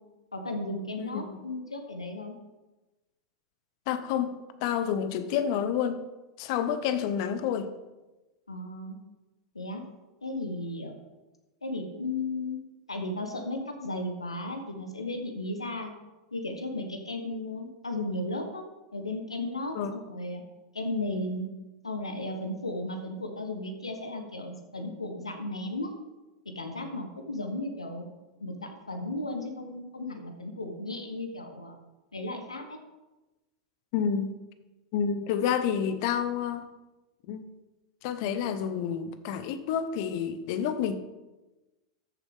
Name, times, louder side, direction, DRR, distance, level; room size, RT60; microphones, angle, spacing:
voice 1, 0.3-2.4 8.5-9.0 9.5-9.8 10.2-11.0 11.6-12.6 12.9-15.9 16.3-18.6 18.9-20.4 20.7-21.5 21.8-25.9 26.4-28.1 28.4-31.8 32.1-32.8, left 2 dB, 90° left, 6 dB, 1.2 m, -35 dB
voice 2, 1.0-1.4 3.9-6.0 6.4-7.7 19.7-19.9 33.9-34.3 34.9-36.7 37.3-37.5 38.0-41.0, left 8 dB, 55° left, 11 dB, 1.0 m, -29 dB
13.5 x 7.2 x 3.7 m, 1.1 s
figure-of-eight pair, 95°, 3 cm